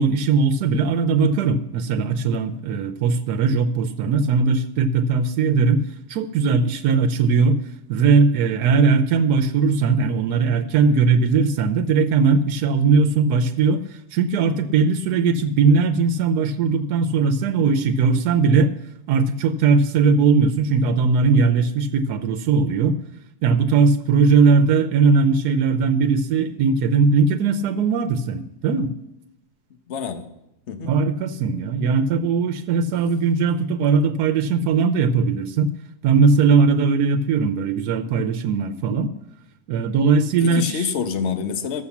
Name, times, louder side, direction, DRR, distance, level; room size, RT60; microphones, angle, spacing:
voice 1, 0.0-5.8 6.1-7.6 7.9-13.8 14.1-18.7 19.1-23.0 23.4-28.9 30.8-35.7 36.0-39.1 39.7-40.9, right 4 dB, 85° right, 7 dB, 1.2 m, -19 dB
voice 2, 29.9-30.3 30.7-30.9 40.4-41.8, left 6 dB, 50° left, 8 dB, 1.2 m, -27 dB
13.0 x 7.1 x 7.1 m, 0.84 s
omnidirectional pair, 1.7 m